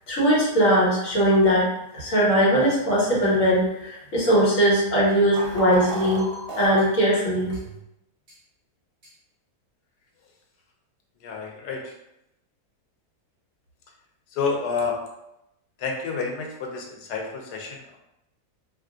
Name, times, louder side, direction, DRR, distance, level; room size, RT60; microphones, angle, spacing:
voice 1, 0.1-1.7 1.9-6.3 6.6-7.5, equal, 55° left, -5 dB, 1.5 m, -20 dB
sound 1, 5.3-6.8 7.5-7.6 8.3-8.4 9.0-9.1, equal, 45° right, 1.0 m, -32 dB
voice 2, 11.2-11.9 14.3-15.0 15.8-18.0, left 4 dB, 90° left, 1 dB, 1.3 m, -29 dB
3.0 x 2.3 x 3.7 m, 0.86 s
omnidirectional pair, 1.7 m